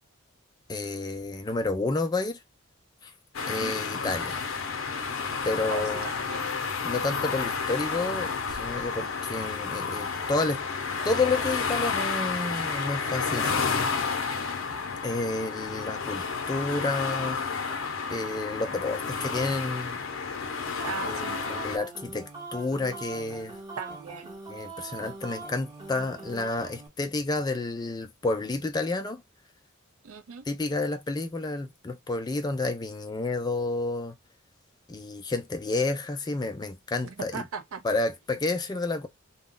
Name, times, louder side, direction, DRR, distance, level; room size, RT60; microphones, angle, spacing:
voice 1, 0.7-2.4 3.0-3.1 3.5-4.4 5.4-6.1 6.8-10.6 11.0-13.6 15.0-17.4 18.1-20.0 21.1-23.6 24.5-29.2 30.5-34.2 34.9-37.4 37.8-39.1, left 3 dB, 20° left, 0.3 m, -30 dB
sound 1, 3.3-21.8, left 5 dB, 70° left, 0.6 m, -31 dB
voice 2, 3.4-3.8 5.6-6.5 20.8-21.5 23.8-24.3 30.0-30.5 37.0-37.8, right 6 dB, 85° right, 0.5 m, -38 dB
sound 2, 20.8-26.9, right 4 dB, 20° right, 0.9 m, -42 dB
2.3 x 2.0 x 3.6 m
head